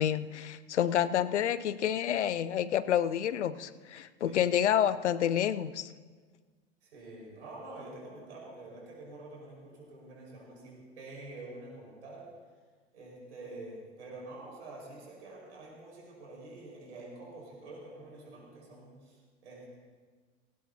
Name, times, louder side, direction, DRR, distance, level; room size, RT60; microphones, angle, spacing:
voice 1, 0.0-5.9, left 10 dB, 70° left, 16 dB, 0.6 m, -29 dB
voice 2, 4.2-4.5 6.8-12.3 12.9-19.8, right 2 dB, 65° right, -3 dB, 5.3 m, -47 dB
18.0 x 18.0 x 2.9 m, 1.5 s
figure-of-eight pair, 80°, 36 cm